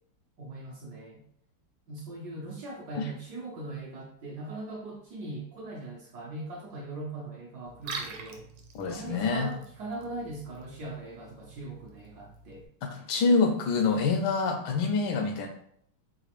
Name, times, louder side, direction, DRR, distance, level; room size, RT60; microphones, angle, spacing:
voice 1, 0.4-1.2 1.9-8.5 8.9-12.7, right 2 dB, 65° right, -2 dB, 1.0 m, -40 dB
Liquid, 7.7-12.7, right 4 dB, 90° right, 1.5 m, -45 dB
voice 2, 8.7-9.5 12.8-15.5, left 4 dB, 80° left, 4 dB, 1.4 m, -26 dB
3.9 x 2.4 x 2.9 m, 0.66 s
omnidirectional pair, 2.3 m